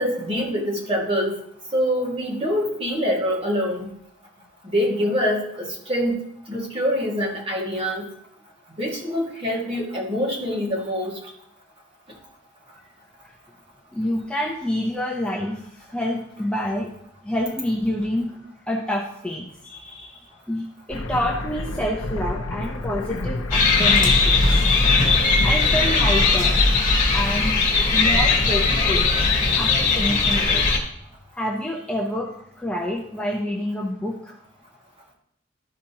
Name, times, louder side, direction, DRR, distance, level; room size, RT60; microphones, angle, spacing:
voice 1, 0.0-1.4 1.7-3.9 4.6-6.2 6.5-8.1 8.7-11.2, equal, 30° right, -2 dB, 1.9 m, -25 dB
voice 2, 13.9-16.9 17.2-18.3 18.7-20.2 20.5-24.7 25.1-26.6 27.1-27.6 27.9-29.1 29.5-30.6 31.4-32.3 32.6-34.3, left 1 dB, 5° left, -2 dB, 0.7 m, -28 dB
sound 1, 20.9-27.3, left 1 dB, 75° left, 0.7 m, -31 dB
sound 2, 23.5-30.8, left 3 dB, 40° left, 1.5 m, -19 dB
13.0 x 5.0 x 2.9 m, 0.73 s
head